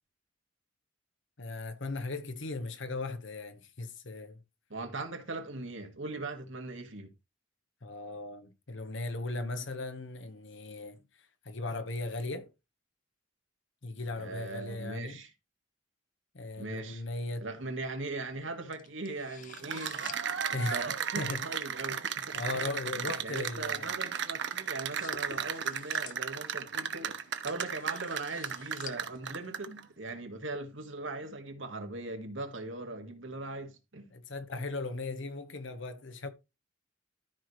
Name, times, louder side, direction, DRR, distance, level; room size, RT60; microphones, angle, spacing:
voice 1, 1.4-4.4 7.8-11.0 11.4-12.5 13.8-15.2 16.3-17.5 20.5-20.8 21.1-21.5 22.3-24.0 34.1-36.3, left 2 dB, 70° left, 1.1 m, -37 dB
voice 2, 4.7-7.1 14.2-15.3 16.6-17.0 17.4-20.2 20.5-22.6 22.9-34.1, right 2 dB, 80° right, 1.8 m, -40 dB
sound 1, 17.2-30.1, left 7 dB, 40° left, 0.8 m, -54 dB
Cheering / Applause, 19.4-29.8, right 7 dB, 60° right, 0.8 m, -35 dB
13.5 x 4.8 x 3.1 m
head